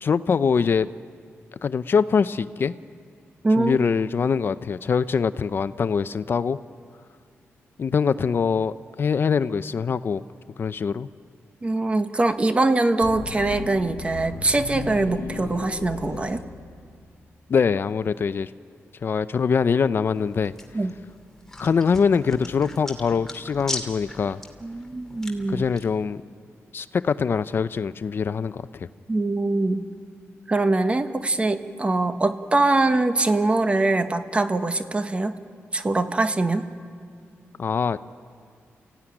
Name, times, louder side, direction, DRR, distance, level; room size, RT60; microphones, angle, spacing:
voice 1, 0.0-0.9 1.6-2.7 3.6-6.6 7.8-10.2 10.6-11.1 17.5-18.5 19.0-20.5 21.6-24.4 25.5-26.2 26.7-28.9 37.6-38.0, left 6 dB, 50° left, 13 dB, 0.5 m, -23 dB
voice 2, 3.4-3.8 11.6-16.4 20.7-21.0 24.6-25.6 29.1-29.8 30.5-35.3 35.7-36.7, right 2 dB, 25° right, 8 dB, 1.3 m, -23 dB
sound 1, 13.0-17.3, left 6 dB, 80° left, 1.2 m, -36 dB
sound 2, 20.1-25.8, left 1 dB, 10° left, 2.6 m, -38 dB
30.0 x 16.0 x 9.9 m, 2.2 s
wide cardioid pair, 110°, 5 cm